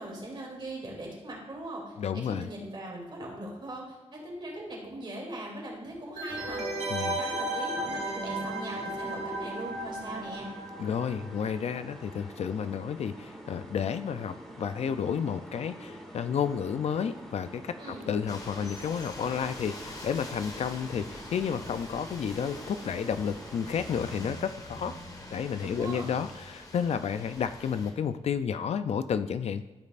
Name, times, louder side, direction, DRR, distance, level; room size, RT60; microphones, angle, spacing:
voice 1, 0.0-6.6 7.0-10.5 17.8-18.1 25.6-26.1, right 1 dB, 40° right, -2 dB, 2.7 m, -40 dB
voice 2, 2.0-2.5 6.9-7.2 10.8-25.0 25.3-29.7, left 7 dB, 65° left, 11 dB, 0.4 m, -31 dB
sound 1, 6.2-11.6 11.9-12.0, right 2 dB, 80° right, 1.1 m, -34 dB
sound 2, 6.3-24.3, equal, 5° left, 2.0 m, -47 dB
sound 3, 18.3-27.9, left 1 dB, 30° left, 1.4 m, -44 dB
13.5 x 5.3 x 2.5 m, 1.1 s
cardioid pair, 90°, 12 cm